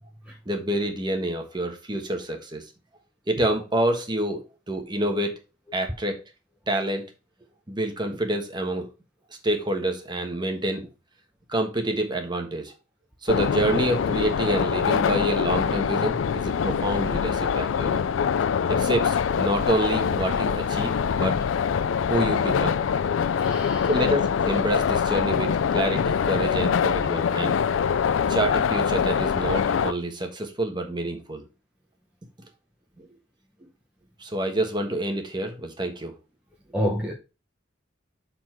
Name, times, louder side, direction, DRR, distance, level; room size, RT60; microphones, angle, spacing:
voice 1, 0.5-2.6 3.3-4.4 4.7-5.4 5.7-6.2 6.7-7.0 7.7-8.9 9.4-10.9 11.5-12.7 13.2-18.0 18.7-21.4 22.1-22.8 23.9-27.6 28.3-31.4 33.0-33.1 34.2-36.1, right 1 dB, 25° right, 4 dB, 1.3 m, -27 dB
sound 1, 13.3-29.9, left 7 dB, 90° left, 0.4 m, -24 dB
voice 2, 23.4-23.9 36.7-37.1, equal, 5° right, -2 dB, 0.9 m, -28 dB
7.0 x 4.1 x 4.5 m, 0.30 s
head